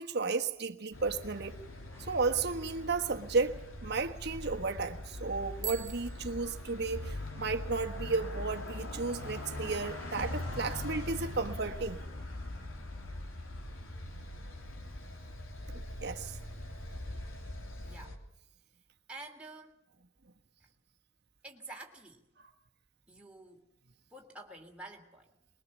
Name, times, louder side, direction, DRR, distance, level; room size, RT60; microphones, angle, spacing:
voice 1, 0.0-1.6 2.1-12.0 15.7-16.4 22.4-22.5, right 4 dB, 55° right, 1.4 m, -33 dB
sound 1, 0.9-18.2, left 1 dB, 85° left, 3.2 m, -42 dB
sound 2, 1.9-10.3, equal, 15° left, 4.6 m, -59 dB
Bicycle bell, 5.6-7.3, right 11 dB, 35° right, 1.3 m, -44 dB
voice 2, 17.8-18.2 19.1-19.7 20.6-20.7 21.4-22.2 23.1-23.6 24.1-25.3, right 2 dB, 5° right, 3.1 m, -48 dB
23.5 x 22.0 x 7.3 m
head